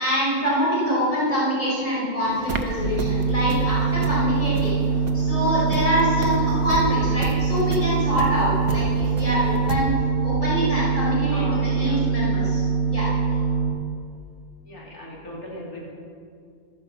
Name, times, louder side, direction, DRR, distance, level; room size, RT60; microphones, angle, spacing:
voice 1, 0.0-4.8 5.1-9.9 10.2-12.6 12.9-13.1, equal, 30° left, -7 dB, 4.8 m, -25 dB
sound 1, 2.2-9.8, right 4 dB, 80° right, 1.3 m, -34 dB
sound 2, 2.8-13.7, right 5 dB, 60° left, 3.4 m, -23 dB
voice 2, 11.3-12.0 14.7-15.8, left 1 dB, 80° left, -5 dB, 3.7 m, -37 dB
13.0 x 9.9 x 7.2 m, 2.4 s
omnidirectional pair, 1.5 m